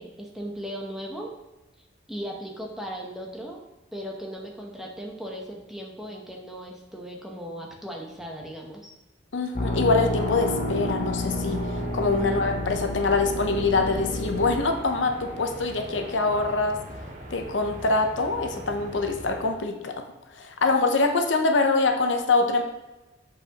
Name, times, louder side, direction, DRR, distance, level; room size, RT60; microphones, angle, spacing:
voice 1, 0.0-1.3 2.1-3.6 3.9-8.9, equal, ahead, -1 dB, 0.8 m, -37 dB
voice 2, 9.3-11.6 11.9-16.8 17.3-20.0 20.3-22.6, left 3 dB, 80° left, 5 dB, 0.7 m, -24 dB
sound 1, 9.6-14.6, left 2 dB, 45° left, 0.7 m, -30 dB
sound 2, 10.2-19.5, right 1 dB, 40° right, 1.0 m, -41 dB
7.7 x 4.7 x 2.9 m, 1.1 s
head